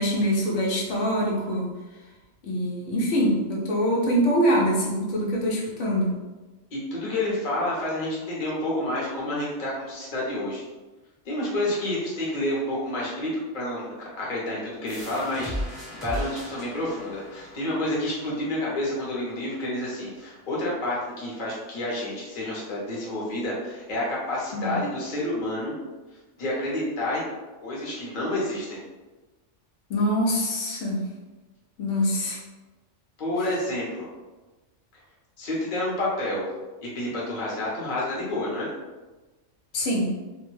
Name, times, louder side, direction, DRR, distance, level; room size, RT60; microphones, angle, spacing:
voice 1, 0.0-1.7 2.4-6.1 24.5-24.8 29.9-31.1 31.8-32.4 39.7-40.1, equal, 90° left, -3 dB, 1.0 m, -24 dB
voice 2, 6.7-10.6 11.2-15.7 16.0-25.7 26.4-27.3 27.6-28.8 33.2-34.1 35.4-36.4 36.8-38.7, left 1 dB, 45° left, -5 dB, 0.9 m, -29 dB
sound 1, 14.9-20.3, equal, ahead, 0.6 m, -38 dB
2.4 x 2.2 x 3.1 m, 1.2 s
omnidirectional pair, 1.2 m